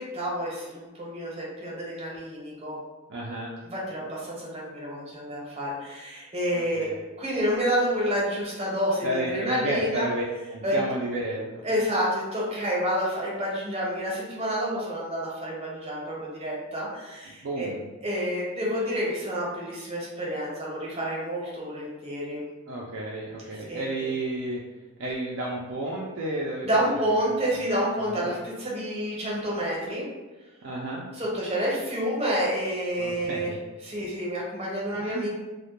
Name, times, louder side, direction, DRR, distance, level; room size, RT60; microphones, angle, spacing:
voice 1, 0.0-2.8 3.6-6.9 7.2-10.1 10.6-10.8 11.6-17.7 18.0-22.4 23.5-24.1 26.6-30.0 31.1-35.3, equal, 30° right, -5 dB, 0.7 m, -29 dB
voice 2, 3.1-3.5 6.5-7.0 9.0-10.2 10.5-11.7 17.4-17.8 22.7-24.6 25.0-26.7 26.9-27.1 28.0-28.3 30.6-31.0 33.0-33.6 35.0-35.3, right 1 dB, 55° right, -4 dB, 0.3 m, -32 dB
2.1 x 2.1 x 2.9 m, 1.2 s
head